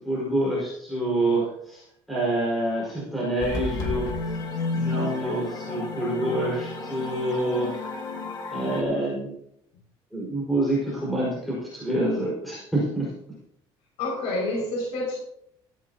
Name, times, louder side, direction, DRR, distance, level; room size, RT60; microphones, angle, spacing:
voice 1, 0.0-4.1 4.7-8.0 8.5-9.4 10.1-13.1, right 1 dB, ahead, -7 dB, 4.9 m, -27 dB
sound 1, 3.4-8.8, left 3 dB, 40° left, 1.8 m, -31 dB
voice 2, 14.0-15.1, left 2 dB, 80° left, -2 dB, 5.8 m, -28 dB
15.5 x 15.0 x 2.9 m, 0.73 s
cardioid pair, 175°, 11 cm